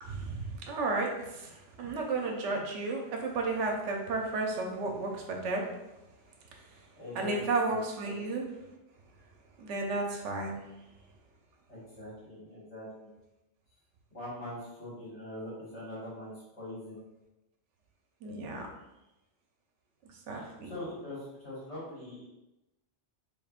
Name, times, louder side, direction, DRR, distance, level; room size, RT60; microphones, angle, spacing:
voice 1, 0.0-5.7 6.7-6.8 7.1-8.5 9.6-10.6 18.2-18.7 20.3-20.7, right 3 dB, 80° right, 1 dB, 1.0 m, -33 dB
voice 2, 7.0-7.4 7.7-8.2 11.7-13.1 14.1-17.0 20.3-22.3, left 1 dB, 70° left, -9 dB, 2.0 m, -43 dB
3.4 x 3.3 x 2.4 m, 0.96 s
omnidirectional pair, 1.2 m